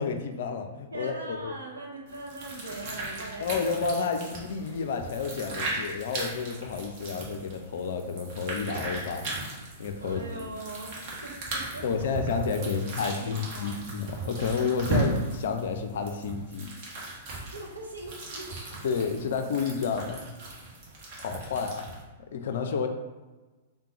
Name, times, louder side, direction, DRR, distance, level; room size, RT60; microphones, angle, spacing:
voice 1, 0.0-1.5 3.4-9.3 9.8-10.2 11.8-16.7 18.8-20.2 21.2-21.9 22.3-22.9, left 5 dB, 60° left, 5 dB, 0.4 m, -30 dB
voice 2, 0.9-3.8 5.4-5.5 10.0-12.1 12.6-13.8 17.4-18.5, right 2 dB, 75° right, -1 dB, 1.0 m, -41 dB
sound 1, 2.1-22.0, right 2 dB, 40° right, 1.3 m, -37 dB
3.7 x 3.7 x 2.9 m, 1.2 s
figure-of-eight pair, 105°, 0 cm